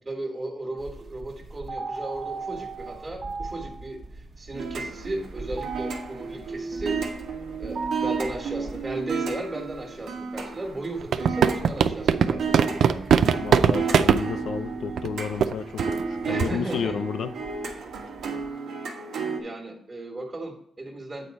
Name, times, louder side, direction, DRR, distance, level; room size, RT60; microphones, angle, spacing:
voice 1, 0.0-7.2 7.6-13.1 16.2-17.0 19.4-21.3, right 2 dB, 25° right, 0 dB, 1.6 m, -35 dB
sound 1, 0.8-18.5, right 3 dB, 50° right, 1.2 m, -40 dB
sound 2, 4.5-19.4, right 4 dB, 90° right, 1.4 m, -33 dB
sound 3, 11.0-14.2 15.0-15.1 15.4-15.5 15.8-16.0 16.4-16.6, right 7 dB, 75° right, 0.4 m, -19 dB
voice 2, 13.4-17.3, left 6 dB, 75° left, 9 dB, 0.5 m, -31 dB
8.4 x 4.5 x 5.2 m, 0.71 s
cardioid pair, 110°, 0 cm